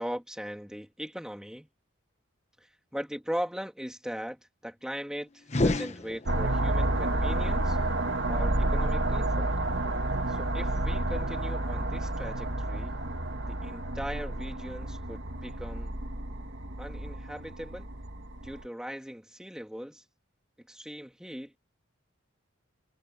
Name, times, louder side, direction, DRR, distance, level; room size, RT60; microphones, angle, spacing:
voice 1, 0.0-1.7 2.6-7.8 8.3-9.5 10.3-13.0 13.5-15.9 16.8-17.9 18.4-20.0 20.7-21.5, equal, 5° right, 2.3 m, -39 dB
sound 1, 5.4-6.7, left 2 dB, 35° left, 1.0 m, -29 dB
sound 2, 6.3-18.6, right 1 dB, 60° right, 2.4 m, -30 dB
head